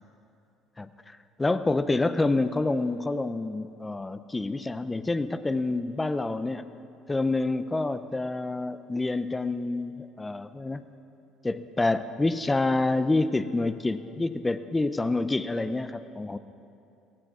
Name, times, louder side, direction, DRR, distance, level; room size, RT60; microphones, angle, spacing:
voice 1, 0.8-6.7 7.1-10.8 11.4-16.4, left 2 dB, 10° left, 12 dB, 0.4 m, -27 dB
18.0 x 16.0 x 4.7 m, 2.7 s
cardioid pair, 160°, 0 cm